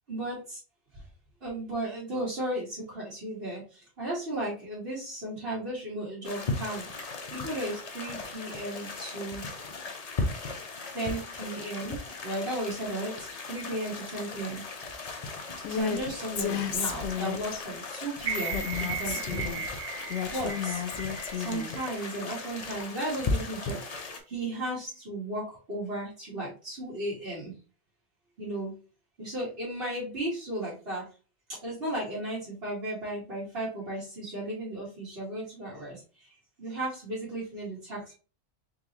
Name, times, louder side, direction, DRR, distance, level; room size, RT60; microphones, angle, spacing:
voice 1, 0.1-0.6 0.9-1.1 1.4-6.9 7.3-9.5 10.9-14.6 15.4-19.6 20.2-20.9 21.4-27.5 28.4-28.8 29.2-31.1 31.5-38.1, right 1 dB, 60° right, -8 dB, 1.9 m, -35 dB
sound 1, 6.2-24.2, left 3 dB, 40° left, 0.7 m, -37 dB
Female speech woman speaking, 15.6-16.0 16.4-17.6 18.5-19.6 20.1-21.7, left 7 dB, 80° left, 0.9 m, -32 dB
sound 2, 18.2-22.3 22.7-22.8, right 4 dB, 40° right, 1.6 m, -37 dB
4.0 x 3.6 x 2.9 m, 0.35 s
omnidirectional pair, 1.2 m